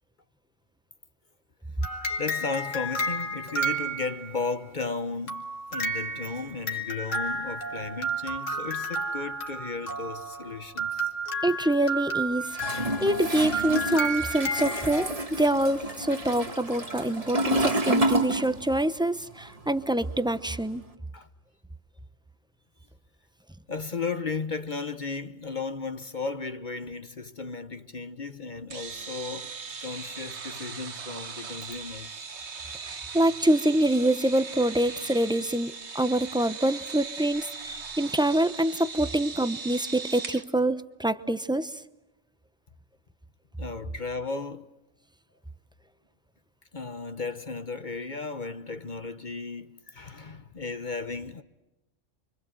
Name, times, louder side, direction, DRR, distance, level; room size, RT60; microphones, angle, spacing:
sound 1, 1.8-4.5 5.3-15.1, right 2 dB, 75° left, 2.7 m, -32 dB
voice 1, 2.2-11.1 21.1-21.3 23.7-29.5 29.8-32.2 43.6-44.7 46.7-51.4, left 4 dB, 40° left, 1.2 m, -35 dB
voice 2, 11.4-12.6 13.0-20.8 32.9-41.7, right 1 dB, 5° right, 0.7 m, -25 dB
Toilet flush, 12.5-19.0 19.2-20.8, right 1 dB, 30° right, 1.6 m, -29 dB
sound 2, 28.7-40.4, right 5 dB, 60° right, 1.7 m, -39 dB
29.5 x 25.0 x 7.8 m
omnidirectional pair, 1.3 m